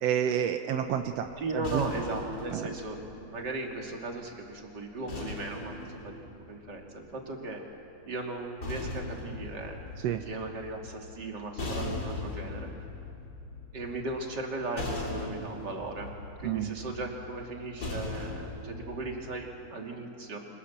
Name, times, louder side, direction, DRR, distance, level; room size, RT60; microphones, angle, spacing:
voice 1, 0.0-1.9 2.5-2.7 10.0-10.2 16.4-16.7, right 9 dB, 80° right, 6 dB, 1.4 m, -29 dB
sound 1, 0.9-4.1 5.1-7.3 8.3-19.4, left 2 dB, 30° left, 3.4 m, -40 dB
voice 2, 1.4-6.2 6.5-7.6 8.1-9.8 10.2-12.7 13.7-16.1 16.4-20.4, right 2 dB, 30° right, 1 dB, 2.9 m, -37 dB
29.5 x 25.5 x 7.5 m, 2.7 s
omnidirectional pair, 4.1 m